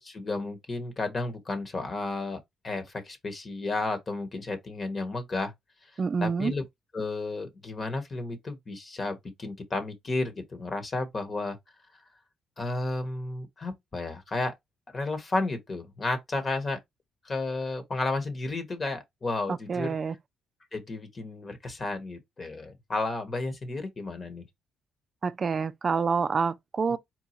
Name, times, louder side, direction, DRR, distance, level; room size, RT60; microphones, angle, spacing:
voice 1, 0.0-2.4 2.6-5.5 5.9-6.6 6.9-11.6 12.6-14.5 14.9-16.8 17.2-19.9 20.7-24.4, left 2 dB, 35° left, 1.5 m, -32 dB
voice 2, 6.0-6.5 19.7-20.1 25.2-27.0, right 5 dB, 40° right, 0.3 m, -27 dB
4.6 x 2.3 x 4.4 m
cardioid pair, 90°, 0 cm